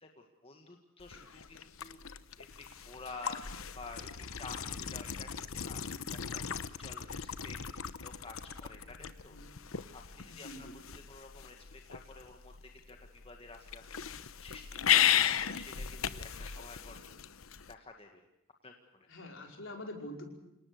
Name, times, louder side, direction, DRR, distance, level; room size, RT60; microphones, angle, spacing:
voice 1, 0.0-2.0 2.4-3.4 3.8-5.8 6.1-7.6 8.0-9.4 9.9-10.0 10.3-12.5 12.9-13.0 13.2-14.1 14.4-15.1 15.4-17.0 17.7-18.2 18.6-18.7, left 3 dB, 25° left, 3 dB, 1.9 m, -50 dB
sound 1, 1.0-17.7, left 9 dB, 75° left, 1.0 m, -36 dB
voice 2, 10.4-11.0 19.1-20.2, left 1 dB, 60° left, 2 dB, 5.2 m, -45 dB
28.5 x 19.0 x 6.7 m, 0.89 s
head